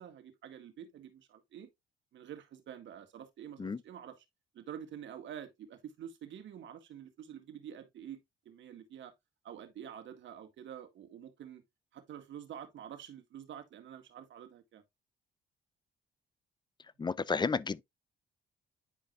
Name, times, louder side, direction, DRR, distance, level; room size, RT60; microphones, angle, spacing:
voice 1, 0.0-1.7 2.1-4.3 4.5-8.2 8.5-9.1 9.4-11.6 11.9-14.8, right 9 dB, 70° right, 1.8 m, -48 dB
voice 2, 17.0-17.8, left 5 dB, 20° left, 0.5 m, -32 dB
10.5 x 4.9 x 2.4 m
cardioid pair, 90°, 20 cm